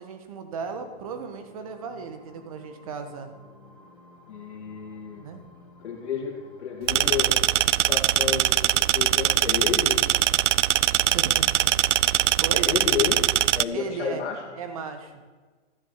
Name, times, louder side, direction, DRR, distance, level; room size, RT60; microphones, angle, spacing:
voice 1, 0.0-3.3 5.2-5.4 11.1-11.7 12.4-12.7 13.7-14.2 14.6-15.1, right 5 dB, 30° right, 8 dB, 1.1 m, -35 dB
sound 1, 0.5-14.8, left 3 dB, 35° left, 2.3 m, -53 dB
voice 2, 4.3-5.2 5.8-7.3 7.9-10.0 12.5-14.4, left 6 dB, 60° left, -3 dB, 2.2 m, -31 dB
sound 2, 6.9-13.6, right 13 dB, 80° right, 0.5 m, -22 dB
13.5 x 7.1 x 7.1 m, 1.4 s
hypercardioid pair, 180°, 36 cm